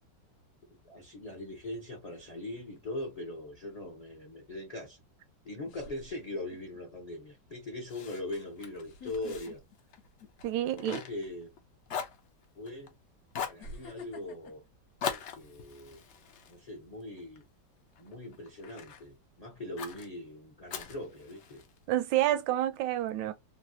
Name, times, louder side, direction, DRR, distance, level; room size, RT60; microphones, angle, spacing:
voice 1, 0.7-5.0 5.4-9.6 10.6-11.5 12.5-12.9 13.5-14.6 15.0-16.0 16.5-17.4 18.0-21.6, left 2 dB, 35° left, 0.6 m, -41 dB
sound 1, 2.5-3.0 4.9-5.0 5.6-6.8 7.2-7.5 8.8-10.7 11.0-11.3 12.3-12.4 13.6-15.9 16.3-16.6, left 2 dB, 60° left, 1.1 m, -50 dB
Fire, 7.9-11.6 11.9-12.9 13.3-13.7 15.0-17.4 17.9-19.0 19.8-20.1 20.7-21.8, left 7 dB, 85° left, 0.6 m, -41 dB
voice 2, 10.4-11.0 21.9-23.3, right 13 dB, 85° right, 1.3 m, -28 dB
3.2 x 2.3 x 2.7 m
omnidirectional pair, 2.0 m